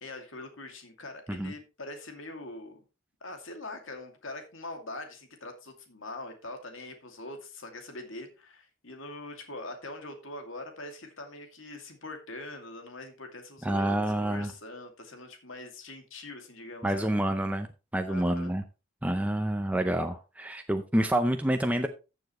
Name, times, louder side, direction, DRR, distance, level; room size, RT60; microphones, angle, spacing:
voice 1, 0.0-2.8 3.2-17.1 18.1-18.6, left 2 dB, 70° left, 5 dB, 2.4 m, -43 dB
voice 2, 13.6-14.5 16.8-17.7 17.9-18.6 19.0-21.9, right 1 dB, 5° right, 6 dB, 0.6 m, -28 dB
14.5 x 7.0 x 3.1 m, 0.30 s
head